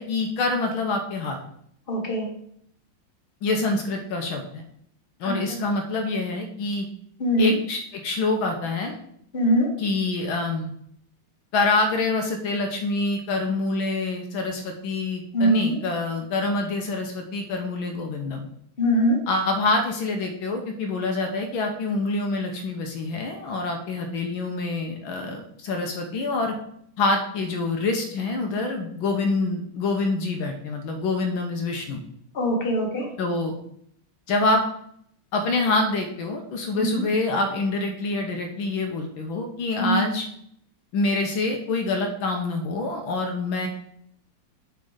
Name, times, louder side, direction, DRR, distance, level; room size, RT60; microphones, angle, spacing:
voice 1, 0.0-1.4 3.4-4.6 5.2-6.9 7.4-8.9 9.8-10.7 11.5-18.5 19.3-26.5 27.0-32.0 33.2-33.5 34.3-34.6 35.3-40.3 40.9-43.7, left 3 dB, 75° left, 3 dB, 1.7 m, -26 dB
voice 2, 1.9-2.3 5.2-5.3 7.2-7.5 9.3-9.7 15.3-15.8 18.8-19.2 32.3-33.1 36.8-37.0 39.8-40.0, equal, 30° left, 0 dB, 1.6 m, -22 dB
7.8 x 4.2 x 5.0 m, 0.69 s
omnidirectional pair, 2.3 m